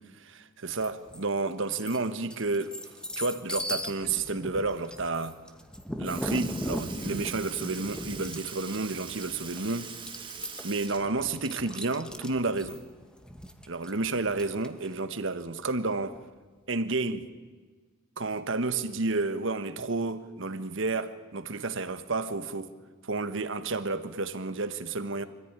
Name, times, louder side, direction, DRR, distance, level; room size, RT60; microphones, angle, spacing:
voice 1, 0.1-2.7 3.2-5.4 6.0-9.9 10.6-12.8 13.7-16.2 16.7-17.3 18.2-22.7 23.0-25.3, right 3 dB, 65° right, 1.3 m, -31 dB
sound 1, 0.8-1.2 1.6-14.9, equal, 5° left, 1.2 m, -38 dB
Sink (filling or washing) / Liquid, 5.6-5.7 6.0-12.1 12.5-12.6 14.1-14.2 15.2-15.3 16.1-16.3 17.1-17.2, right 6 dB, 25° right, 1.9 m, -43 dB
25.5 x 14.5 x 9.7 m
head